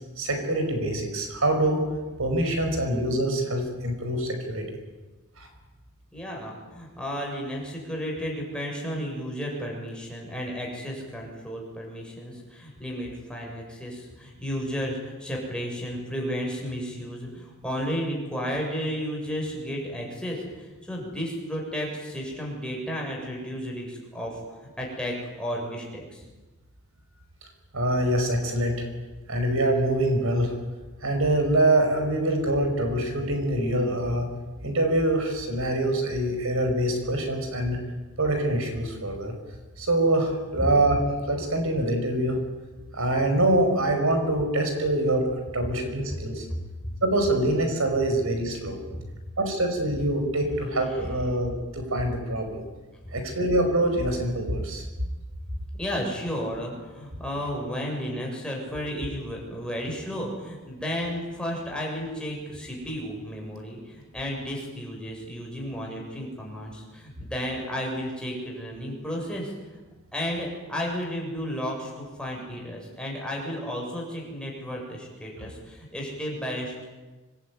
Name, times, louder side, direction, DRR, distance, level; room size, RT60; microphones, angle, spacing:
voice 1, 0.2-1.9 2.2-4.7 5.4-5.5 27.7-28.9 29.3-30.5 31.0-34.3 34.6-37.8 38.2-39.3 39.8-41.0 41.3-42.4 42.9-45.2 45.5-46.5 47.0-48.8 49.4-52.6 53.1-54.8, right 1 dB, 70° right, 4 dB, 5.6 m, -24 dB
voice 2, 6.1-24.4 24.8-26.2 46.8-46.9 48.8-49.2 53.1-53.2 55.8-69.5 70.1-76.8, equal, 5° left, -2 dB, 7.1 m, -33 dB
26.0 x 20.0 x 9.5 m, 1.2 s
head